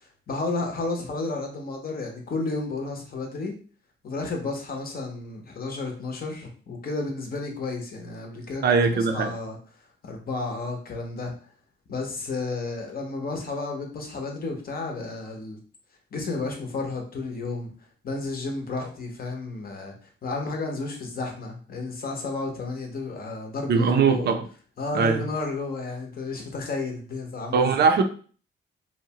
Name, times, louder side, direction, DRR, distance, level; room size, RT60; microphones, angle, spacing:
voice 1, 0.0-3.5 4.0-8.6 8.9-9.6 10.0-11.3 11.9-15.6 16.1-17.7 18.0-19.9 20.2-24.3 24.8-27.8, left 3 dB, 45° left, 2 dB, 0.7 m, -32 dB
voice 2, 8.6-9.3 23.7-24.4 24.9-25.2 27.5-28.0, right 5 dB, 55° right, 6 dB, 0.4 m, -20 dB
2.7 x 2.1 x 2.8 m, 0.42 s
cardioid pair, 110°, 21 cm